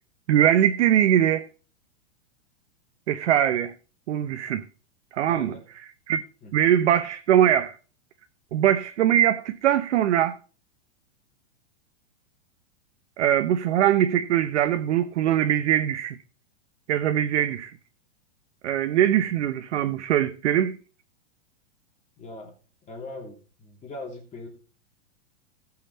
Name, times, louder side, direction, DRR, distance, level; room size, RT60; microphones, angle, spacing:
voice 1, 0.3-1.5 3.1-3.7 4.1-4.7 5.1-5.5 6.1-6.2 6.5-7.8 8.5-10.3 13.2-16.2 16.9-17.7 18.6-20.8, right 10 dB, 70° right, 0.9 m, -22 dB
voice 2, 5.3-5.7 6.4-6.5 19.0-19.6 22.2-22.5 22.8-24.5, left 2 dB, 20° left, 3.0 m, -41 dB
17.0 x 5.8 x 4.2 m
hypercardioid pair, 135°, 36 cm